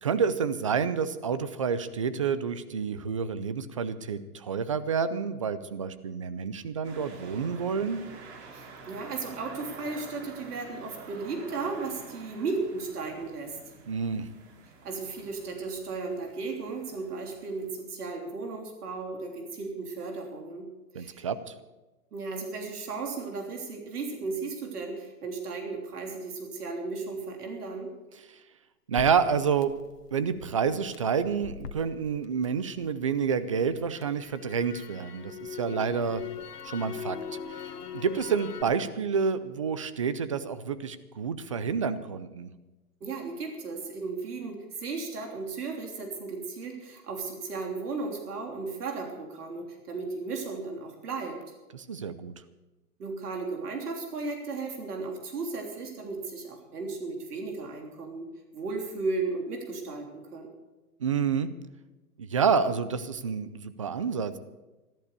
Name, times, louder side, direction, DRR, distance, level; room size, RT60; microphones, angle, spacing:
voice 1, 0.0-8.0 13.9-14.3 20.9-21.5 28.9-29.7 30.1-36.2 36.6-37.2 37.5-37.6 37.9-42.5 51.7-52.3 61.0-61.5 62.2-64.4, right 6 dB, 25° right, 14 dB, 0.4 m, -29 dB
sound 1, 6.8-17.7, right 4 dB, 45° right, 2.7 m, -48 dB
voice 2, 8.5-13.5 14.8-20.7 21.0-21.3 22.1-27.9 43.0-51.4 53.0-58.3 58.5-60.6, right 4 dB, 75° right, 3 dB, 3.5 m, -35 dB
Crackle, 29.0-33.1 33.5-38.6, left 7 dB, 85° left, 1.5 m, -41 dB
14.0 x 13.0 x 6.7 m, 1.1 s
hypercardioid pair, 150°, 46 cm